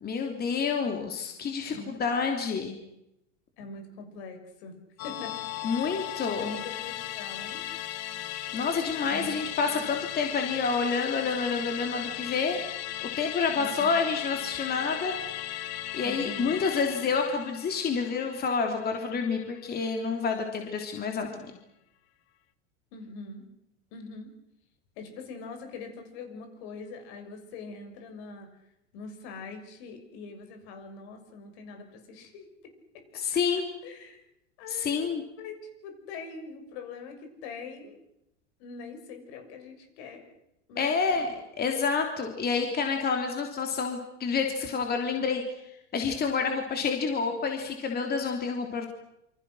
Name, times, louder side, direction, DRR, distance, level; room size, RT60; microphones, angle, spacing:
voice 1, 0.0-2.8 5.6-6.4 8.5-12.6 13.0-15.1 15.9-21.5 33.1-33.6 34.7-35.2 40.8-41.3 41.6-48.9, left 5 dB, 25° left, 4 dB, 3.3 m, -28 dB
voice 2, 1.7-2.0 3.6-5.9 6.4-7.6 9.1-10.1 13.5-14.0 16.0-16.6 22.9-23.4 23.9-24.3 25.0-28.5 28.9-33.2 33.8-34.2 34.6-35.1 35.4-35.6 35.8-38.0 38.6-40.2 40.7-41.3, left 4 dB, 60° left, 6 dB, 6.7 m, -43 dB
Musical instrument, 5.0-19.7 20.0-20.1, left 13 dB, 45° left, 1.6 m, -37 dB
27.5 x 25.5 x 6.4 m, 0.83 s
supercardioid pair, 120°, 36 cm